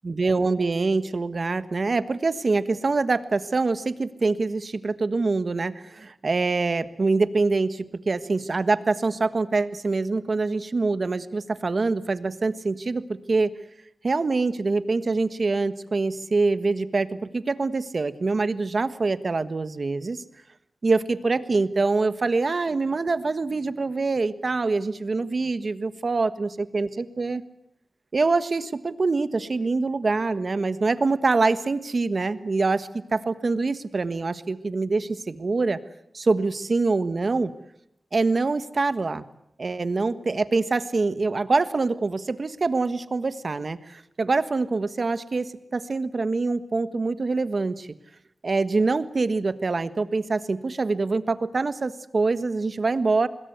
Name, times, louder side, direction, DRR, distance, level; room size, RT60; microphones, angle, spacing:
voice 1, 0.0-13.5 14.0-20.2 20.8-27.4 28.1-35.8 36.1-37.5 38.1-39.3 39.6-47.9 48.4-53.3, right 3 dB, 55° right, 13 dB, 1.4 m, -25 dB
26.0 x 21.0 x 8.0 m, 0.77 s
wide cardioid pair, 90°, 0 cm